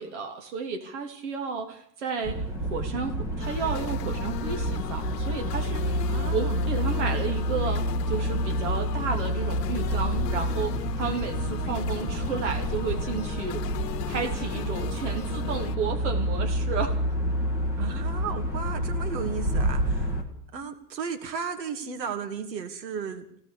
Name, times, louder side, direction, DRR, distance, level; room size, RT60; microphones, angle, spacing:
voice 1, 0.0-13.6 14.0-16.9, right 5 dB, 45° right, 4 dB, 3.2 m, -32 dB
sound 1, 2.2-20.2, equal, 5° right, 1.6 m, -29 dB
sound 2, 3.4-15.8, left 12 dB, 70° left, 1.2 m, -37 dB
voice 2, 6.1-6.7 17.8-20.2 20.5-23.4, right 6 dB, 90° right, 8 dB, 2.9 m, -35 dB
21.5 x 17.5 x 6.9 m, 0.69 s
supercardioid pair, 180°, 49 cm